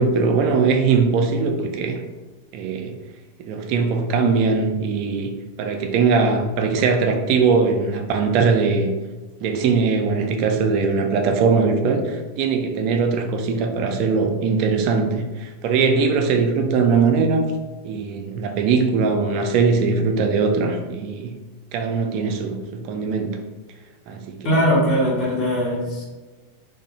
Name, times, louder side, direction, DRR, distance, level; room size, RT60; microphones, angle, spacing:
voice 1, 0.0-2.0 2.5-2.9 3.4-5.3 5.6-8.9 9.4-17.5 17.8-21.4 21.7-23.4 24.1-24.5, right 4 dB, 40° right, 4 dB, 0.3 m, -20 dB
voice 2, 24.4-26.0, equal, 35° left, -4 dB, 0.8 m, -20 dB
2.7 x 2.0 x 2.6 m, 1.2 s
figure-of-eight pair, 90°, 0 cm